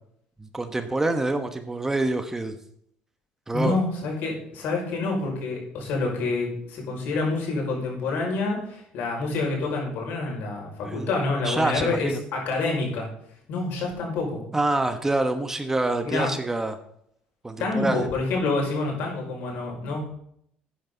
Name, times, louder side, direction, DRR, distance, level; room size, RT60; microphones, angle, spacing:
voice 1, 0.4-2.5 3.5-3.7 10.8-11.1 11.4-12.2 14.5-16.8 17.4-18.1, right 2 dB, 15° right, 8 dB, 1.3 m, -26 dB
voice 2, 3.5-13.1 13.5-14.4 16.0-16.3 17.6-20.2, left 3 dB, 75° left, 0 dB, 5.7 m, -27 dB
13.0 x 9.5 x 4.0 m, 0.70 s
cardioid pair, 100°, 3 cm